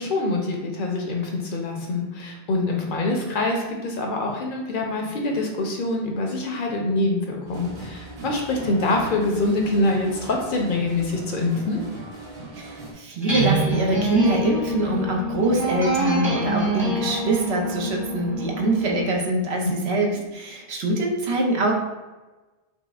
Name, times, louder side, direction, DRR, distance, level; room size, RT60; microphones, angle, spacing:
voice 1, 0.0-11.8 19.6-19.7, left 2 dB, 60° left, 1 dB, 0.7 m, -25 dB
sound 1, 7.5-12.9, right 2 dB, 65° right, 1.1 m, -39 dB
voice 2, 12.5-21.7, right 1 dB, 85° right, 0 dB, 0.9 m, -24 dB
sound 2, 13.2-19.1, right 2 dB, 30° right, 0.7 m, -26 dB
5.3 x 2.0 x 2.3 m, 1.2 s
omnidirectional pair, 1.1 m